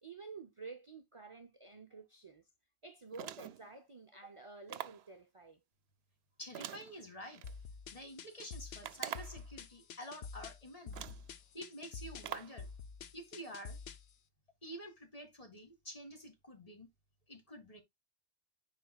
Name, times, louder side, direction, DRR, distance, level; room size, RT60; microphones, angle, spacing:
voice 1, 0.0-2.5 2.8-5.6, right 4 dB, 35° right, 0.6 m, -51 dB
sound 1, 3.1-3.7 4.7-5.1 6.5-7.5 8.8-9.5 10.4-10.5 10.9-11.3 12.2-12.6, right 10 dB, 75° right, 0.8 m, -45 dB
voice 2, 6.4-7.4 7.9-11.1 11.5-12.7 13.1-13.8 14.6-16.9 17.3-17.8, equal, 35° left, 2.1 m, -49 dB
sound 2, 7.4-14.1, left 5 dB, 75° left, 1.0 m, -48 dB
10.0 x 5.1 x 2.3 m
omnidirectional pair, 1.1 m